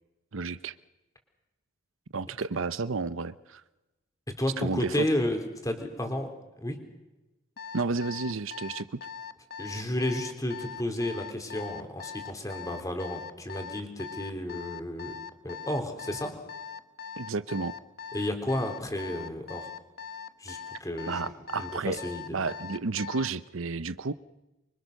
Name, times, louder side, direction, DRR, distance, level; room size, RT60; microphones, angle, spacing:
voice 1, 0.3-0.7 2.1-3.6 4.6-5.1 7.7-9.0 17.2-17.7 21.1-22.0 22.3-24.1, right 4 dB, 90° right, 15 dB, 0.8 m, -31 dB
voice 2, 4.4-6.3 6.6-6.8 9.6-15.1 15.4-16.3 18.1-19.7 20.4-21.2 21.6-22.4, left 1 dB, 15° left, 5 dB, 3.5 m, -32 dB
Alarm, 7.6-23.4, left 7 dB, 50° left, 1.0 m, -41 dB
26.0 x 24.5 x 6.6 m, 1.0 s
head